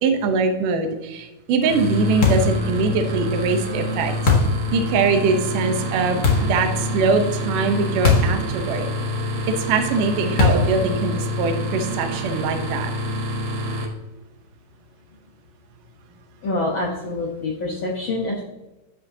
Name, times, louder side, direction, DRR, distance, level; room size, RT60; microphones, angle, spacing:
voice 1, 0.0-4.1 4.7-8.9 9.5-12.9, right 4 dB, 75° right, 6 dB, 2.4 m, -22 dB
sound 1, 1.6-13.9, left 1 dB, 60° right, 2.2 m, -27 dB
sound 2, 2.2-2.6 4.3-4.6 6.2-6.6 8.0-8.4 8.7-8.8 10.4-10.8, left 3 dB, 50° left, 1.1 m, -18 dB
voice 2, 16.4-18.4, left 2 dB, 75° left, -1 dB, 1.1 m, -26 dB
11.5 x 8.3 x 2.7 m, 1.0 s
omnidirectional pair, 3.9 m